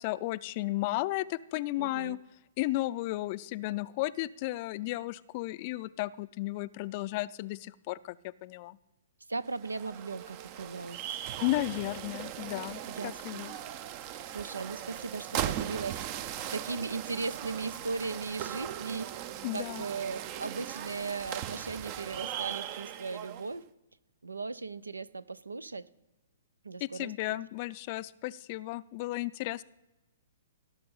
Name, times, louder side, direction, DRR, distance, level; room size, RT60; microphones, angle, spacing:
voice 1, 0.0-2.2 2.6-8.8 11.4-13.5 19.4-19.8 26.8-29.6, left 18 dB, 40° left, 17 dB, 0.4 m, -34 dB
voice 2, 1.8-2.2 9.3-11.2 12.9-13.5 14.3-19.1 19.5-23.6 24.2-25.9 26.6-27.4, right 4 dB, 90° right, 19 dB, 0.4 m, -38 dB
sound 1, 9.5-23.6, right 11 dB, 40° right, 0.6 m, -39 dB
17.0 x 6.0 x 5.5 m, 1.0 s
hypercardioid pair, 120°, 0 cm